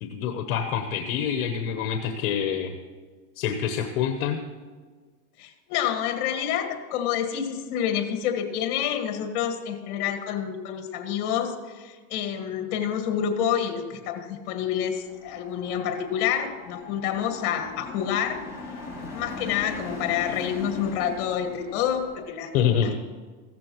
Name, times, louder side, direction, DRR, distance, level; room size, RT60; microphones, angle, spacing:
voice 1, 0.0-2.8 3.4-4.4 22.5-23.0, left 8 dB, 65° left, 6 dB, 1.1 m, -26 dB
voice 2, 5.4-18.4 19.1-22.9, left 9 dB, 50° left, 6 dB, 1.8 m, -28 dB
sound 1, 14.8-22.3, left 2 dB, 5° right, 3.9 m, -40 dB
15.5 x 13.5 x 3.0 m, 1.5 s
supercardioid pair, 165°, 44 cm